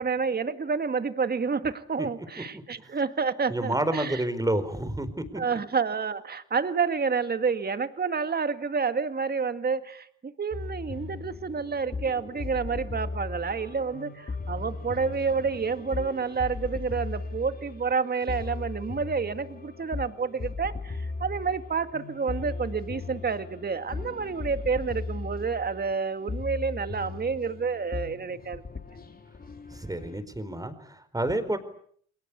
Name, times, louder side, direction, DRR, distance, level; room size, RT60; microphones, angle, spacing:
voice 1, 0.0-4.2 5.4-28.6, right 5 dB, 30° right, 10 dB, 2.0 m, -29 dB
voice 2, 3.5-5.4 29.7-31.6, right 1 dB, 10° right, 12 dB, 4.6 m, -29 dB
sound 1, 10.5-30.2, left 3 dB, 30° left, 3.1 m, -37 dB
30.0 x 21.5 x 8.5 m, 0.62 s
cardioid pair, 90°, 30 cm